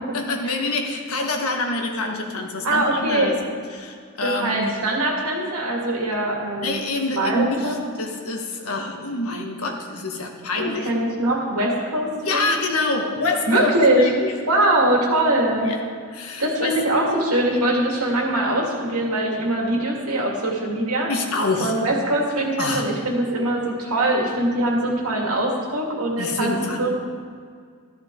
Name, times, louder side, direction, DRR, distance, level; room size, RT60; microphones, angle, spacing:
voice 1, 0.1-3.4 3.7-4.8 6.6-10.9 12.2-14.3 15.6-15.7 16.1-16.8 21.1-21.7 22.6-22.9 26.2-26.9, left 2 dB, 80° left, 2 dB, 1.6 m, -26 dB
voice 2, 2.6-3.3 4.2-6.8 7.1-7.8 10.6-13.1 13.5-14.0 14.5-15.7 16.4-21.1 21.6-26.9, right 1 dB, 90° right, -1 dB, 2.3 m, -22 dB
13.0 x 11.5 x 3.8 m, 2.1 s
head